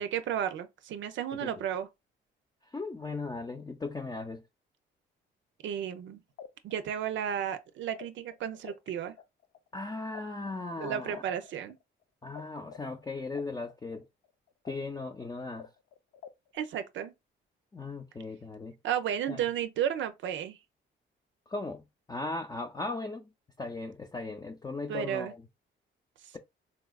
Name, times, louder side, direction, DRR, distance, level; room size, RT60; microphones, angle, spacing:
voice 1, 0.0-1.9 5.6-6.2 6.6-9.2 10.8-11.8 16.5-17.1 18.8-20.6 24.9-25.3, right 9 dB, 70° right, 0.5 m, -33 dB
voice 2, 2.7-4.4 9.7-11.2 12.2-14.0 14.6-15.7 17.7-18.7 19.3-19.4 21.5-23.3 23.6-25.4, left 3 dB, 20° left, 0.6 m, -37 dB
sound 1, 6.0-6.1 6.4-8.9 9.2-12.4 12.7-16.6, left 8 dB, 75° left, 0.5 m, -49 dB
4.0 x 2.3 x 2.3 m
cardioid pair, 90°, 20 cm